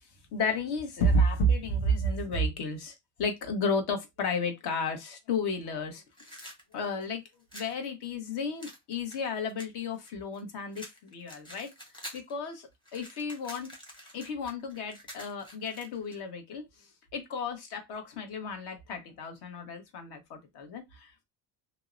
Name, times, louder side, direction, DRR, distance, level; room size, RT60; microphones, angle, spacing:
voice 1, 0.3-2.9 3.2-6.0 6.7-7.2 7.5-11.7 12.1-13.7 14.1-16.6 17.1-21.1, left 1 dB, 55° left, 1.0 m, -32 dB
sound 1, 6.1-7.8 8.6-10.4 10.7-12.3 12.6-16.2, equal, 10° left, 0.8 m, -47 dB
2.7 x 2.0 x 2.4 m
supercardioid pair, 110°, 48 cm